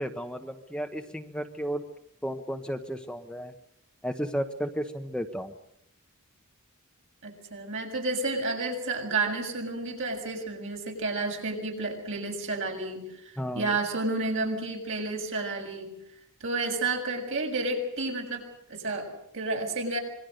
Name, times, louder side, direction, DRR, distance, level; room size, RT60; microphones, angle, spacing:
voice 1, 0.0-1.8 2.2-3.5 4.0-5.5 13.4-13.7, equal, 5° left, 6 dB, 1.1 m, -33 dB
voice 2, 7.2-16.0 16.4-20.0, right 3 dB, 60° right, 2 dB, 6.8 m, -31 dB
26.5 x 22.0 x 6.6 m, 0.79 s
head